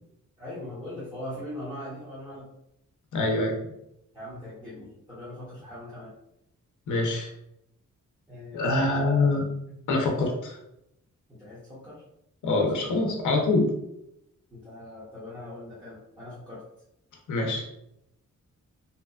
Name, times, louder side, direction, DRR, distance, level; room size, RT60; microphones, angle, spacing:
voice 1, 0.4-2.5 4.1-6.1 8.3-9.0 9.9-10.3 11.3-12.0 12.7-12.9 14.5-16.6, left 1 dB, 15° right, -11 dB, 0.7 m, -41 dB
voice 2, 3.1-3.6 6.9-7.3 8.5-9.4 9.9-10.6 12.4-13.7 17.3-17.6, left 2 dB, 75° left, 1 dB, 0.6 m, -24 dB
2.7 x 2.2 x 2.3 m, 0.81 s
wide cardioid pair, 165°, 31 cm